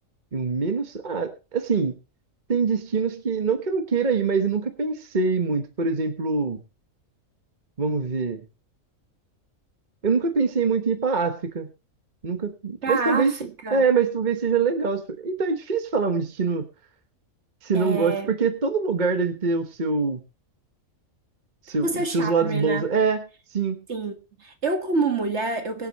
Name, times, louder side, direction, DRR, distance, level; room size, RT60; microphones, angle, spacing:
voice 1, 0.3-1.9 2.5-6.6 7.8-8.4 10.0-11.7 12.2-16.6 17.6-20.2 21.7-23.2 23.5-23.8, right 4 dB, 35° right, 1.4 m, -24 dB
voice 2, 12.8-13.8 17.7-18.3 21.7-22.9 23.9-24.1 24.4-25.9, right 3 dB, 55° right, 2.0 m, -27 dB
23.5 x 8.0 x 3.1 m
omnidirectional pair, 1.4 m